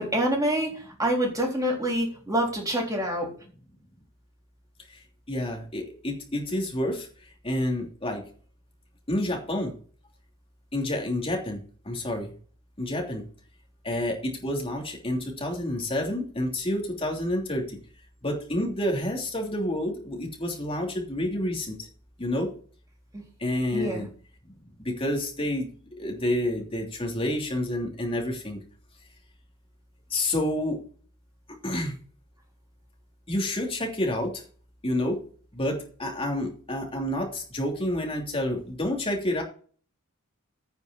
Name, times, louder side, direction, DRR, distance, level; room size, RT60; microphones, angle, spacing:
voice 1, 0.0-3.3 23.1-23.2 23.7-24.1, right 1 dB, 15° right, 0 dB, 3.8 m, -26 dB
voice 2, 5.3-7.1 7.4-8.2 9.1-9.7 10.7-12.3 12.8-13.3 13.8-17.8 18.2-21.9 22.2-22.5 23.4-24.1 24.8-25.7 26.0-28.6 30.1-30.8 31.6-31.9 33.3-34.4 34.8-35.2 35.5-39.4, left 1 dB, 25° left, 1 dB, 3.1 m, -29 dB
9.2 x 5.4 x 8.2 m, 0.42 s
head